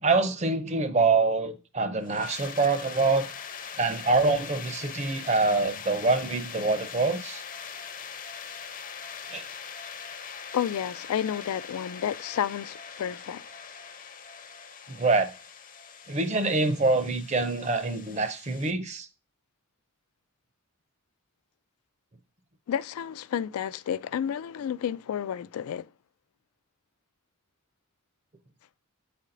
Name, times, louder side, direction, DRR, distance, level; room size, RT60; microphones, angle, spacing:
voice 1, 0.0-3.3 3.8-7.4 9.3-9.4 14.9-15.3 16.1-19.1, right 3 dB, 30° right, 0.6 m, -25 dB
sound 1, 2.0-18.7, left 6 dB, 40° left, 0.6 m, -42 dB
voice 2, 10.5-13.4 22.7-25.9, left 9 dB, 80° left, 0.3 m, -31 dB
8.2 x 4.3 x 3.8 m
head